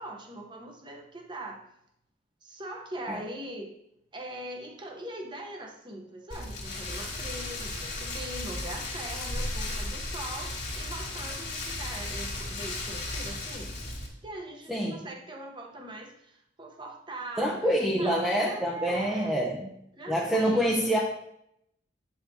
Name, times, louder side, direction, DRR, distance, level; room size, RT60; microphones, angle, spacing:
voice 1, 0.0-1.6 2.4-3.7 4.1-13.7 14.2-19.4 19.9-20.9, right 1 dB, 25° right, 2 dB, 0.9 m, -41 dB
Rain, 6.3-14.1, left 2 dB, 60° left, 1.9 m, -35 dB
voice 2, 14.7-15.0 17.4-19.7 20.1-21.0, equal, ahead, -4 dB, 0.6 m, -26 dB
8.6 x 5.6 x 2.8 m, 0.77 s
head